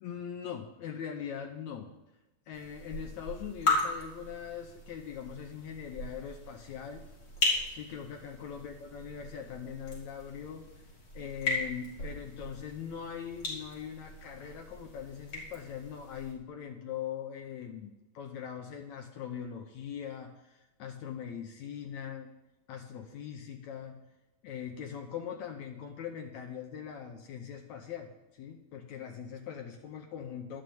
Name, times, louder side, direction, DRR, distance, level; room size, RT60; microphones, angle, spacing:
voice 1, 0.0-1.9 2.5-7.0 7.7-10.6 11.1-22.3 22.7-24.0 24.4-30.6, left 8 dB, 80° left, 3 dB, 1.6 m, -41 dB
sound 1, 2.5-16.3, left 2 dB, 30° left, 3.3 m, -37 dB
11.5 x 6.4 x 8.6 m, 0.99 s
omnidirectional pair, 4.3 m